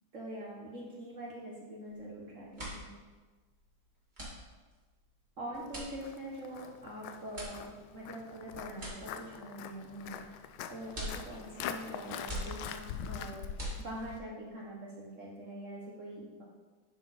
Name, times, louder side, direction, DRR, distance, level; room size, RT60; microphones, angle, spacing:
voice 1, 0.1-2.9 5.4-13.4 13.8-16.4, right 1 dB, 45° right, -4 dB, 1.3 m, -44 dB
sound 1, 1.8-2.1 2.4-14.3, equal, 20° right, 2.3 m, -45 dB
Walk footsteps, 5.6-14.2, left 8 dB, 85° left, 1.4 m, -44 dB
11.5 x 4.6 x 4.2 m, 1.3 s
omnidirectional pair, 2.2 m